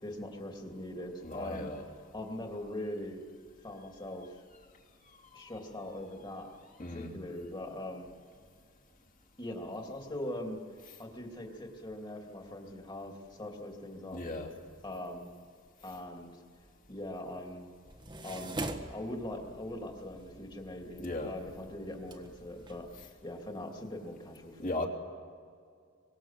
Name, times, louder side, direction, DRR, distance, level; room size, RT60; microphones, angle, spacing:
voice 1, 0.0-1.7 2.1-3.2 3.6-4.3 5.3-6.5 6.9-8.1 9.4-10.6 11.0-14.2 14.8-15.3 15.8-16.4 16.9-17.7 18.2-22.9 23.2-24.8, left 1 dB, 25° left, 2 dB, 2.8 m, -41 dB
voice 2, 1.2-1.8 6.4-6.5 6.8-7.2 10.8-11.0 14.1-14.5 21.0-21.3 23.0-23.1 24.6-24.9, left 2 dB, 40° left, 2 dB, 3.0 m, -37 dB
sound 1, 17.8-23.1, right 2 dB, 25° right, 1.4 m, -44 dB
24.5 x 23.5 x 7.5 m, 2.3 s
head